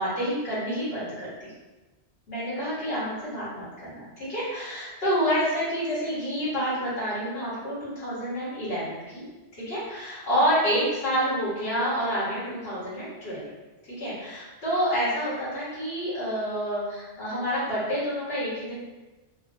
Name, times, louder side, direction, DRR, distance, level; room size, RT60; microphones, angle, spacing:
voice 1, 0.0-1.5 2.3-9.2 9.6-13.5 14.0-18.8, equal, 70° left, -10 dB, 1.7 m, -28 dB
3.9 x 2.5 x 2.6 m, 1.2 s
omnidirectional pair, 1.1 m